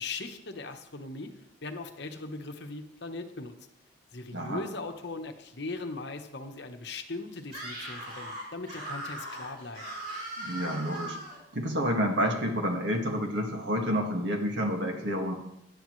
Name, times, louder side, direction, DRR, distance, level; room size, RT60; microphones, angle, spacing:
voice 1, 0.0-1.4 1.6-3.5 4.1-9.8, left 3 dB, 55° left, 6 dB, 1.1 m, -39 dB
voice 2, 4.3-4.6 10.4-11.2 11.5-15.3, equal, 60° right, 2 dB, 2.0 m, -29 dB
Screaming, 7.4-11.4, right 1 dB, 40° right, 5.2 m, -39 dB
18.0 x 11.5 x 3.2 m, 0.80 s
head